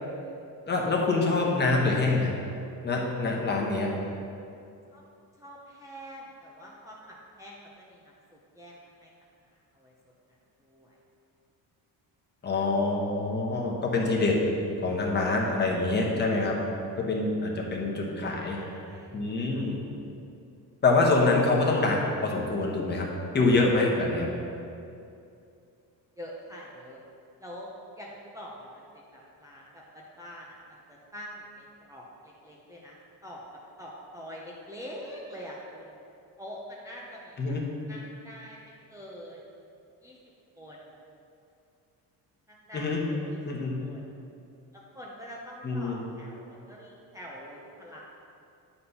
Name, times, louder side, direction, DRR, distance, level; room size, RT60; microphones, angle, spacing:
voice 1, 0.7-2.3 2.8-3.9 12.4-14.4 14.8-16.6 17.0-18.6 19.1-19.8 20.8-23.1 23.3-24.3 37.4-37.6 42.7-43.0 43.4-43.8 45.6-46.0, left 3 dB, 25° left, -1 dB, 1.1 m, -25 dB
voice 2, 5.4-8.7 9.0-9.1 9.7-9.9 10.6-10.9 18.5-19.1 26.2-27.0 27.4-27.7 28.0-33.0 33.2-33.4 33.8-35.9 36.4-37.6 37.9-39.4 40.0-40.2 40.6-40.8 42.5-43.4 43.8-44.0 44.7-48.0, equal, 10° right, -5 dB, 0.7 m, -45 dB
9.6 x 4.3 x 5.5 m, 2.6 s
cardioid pair, 160°, 37 cm